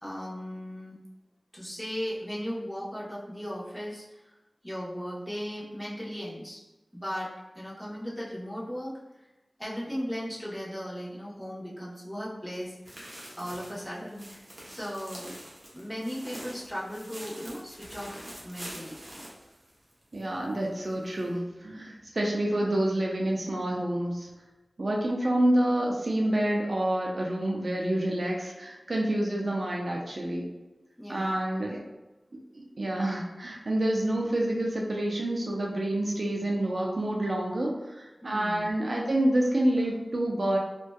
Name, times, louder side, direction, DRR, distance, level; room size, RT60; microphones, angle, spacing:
voice 1, 0.0-1.0 1.5-4.3 4.6-6.6 6.9-7.3 7.5-8.9 9.6-13.1 13.4-15.3 15.7-19.0 31.0-31.8 38.2-38.7, equal, 5° left, -6 dB, 0.8 m, -37 dB
sound 1, 12.5-20.2 20.5-20.6 21.2-21.3, equal, 50° right, 0.8 m, -45 dB
voice 2, 20.1-24.3 24.8-30.5 31.1-31.8 32.5-40.6, right 1 dB, 65° right, -2 dB, 0.4 m, -28 dB
2.5 x 2.2 x 2.2 m, 1.1 s
wide cardioid pair, 50°, 0 cm